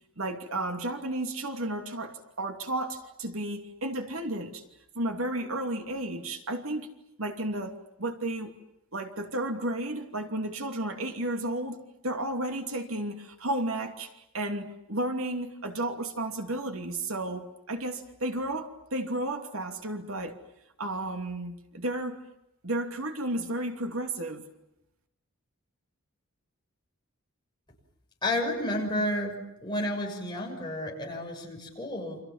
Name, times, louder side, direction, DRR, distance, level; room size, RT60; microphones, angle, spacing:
voice 1, 0.2-4.6 4.9-6.9 7.2-8.6 8.9-14.1 14.3-20.4 20.8-22.2 22.6-24.5, right 1 dB, 70° right, 5 dB, 2.8 m, -33 dB
voice 2, 28.2-29.4 29.6-32.2, left 1 dB, 20° left, 0 dB, 6.6 m, -31 dB
29.5 x 27.0 x 7.4 m, 0.86 s
head